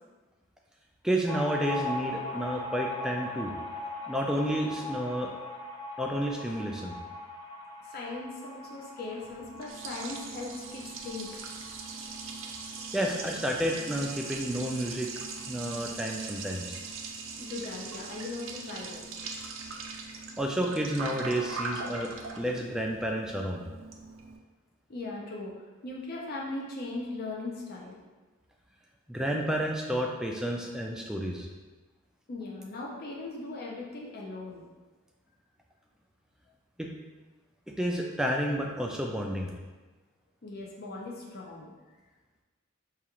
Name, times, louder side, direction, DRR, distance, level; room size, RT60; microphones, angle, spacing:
voice 1, 1.0-3.5 4.1-5.3 6.0-7.0 12.9-15.1 15.5-16.8 20.4-22.1 22.3-23.7 29.1-31.5 36.8-36.9 37.8-39.5, equal, 5° right, 0 dB, 0.3 m, -30 dB
sound 1, 1.2-14.4 14.7-14.8 15.0-15.8, left 2 dB, 15° left, 0.9 m, -40 dB
voice 2, 7.8-11.3 17.4-19.0 24.9-25.5 25.8-28.0 32.3-34.7 40.4-41.8, left 2 dB, 45° left, -3 dB, 0.6 m, -39 dB
Liquid, 9.2-24.4, right 4 dB, 70° right, 0.4 m, -41 dB
4.8 x 2.4 x 2.9 m, 1.3 s
head